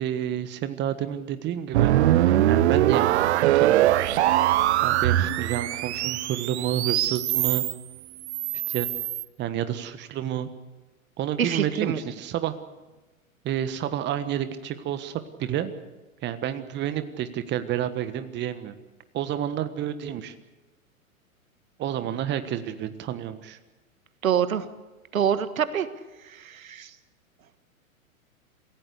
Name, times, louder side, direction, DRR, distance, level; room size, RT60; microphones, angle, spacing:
voice 1, 0.0-1.9 2.5-4.0 4.8-7.6 8.7-8.9 9.4-10.5 11.2-12.5 13.4-15.7 16.2-18.8 19.1-20.3 21.8-23.6, right 10 dB, 25° right, 10 dB, 1.5 m, -30 dB
sound 1, 1.7-7.7 8.2-9.2, right 13 dB, 50° right, 0.9 m, -22 dB
voice 2, 11.4-12.0 24.2-24.7 25.1-25.9 26.2-26.9, right 9 dB, 70° right, 12 dB, 1.6 m, -26 dB
27.0 x 16.5 x 8.3 m, 1.1 s
figure-of-eight pair, 110°, 42 cm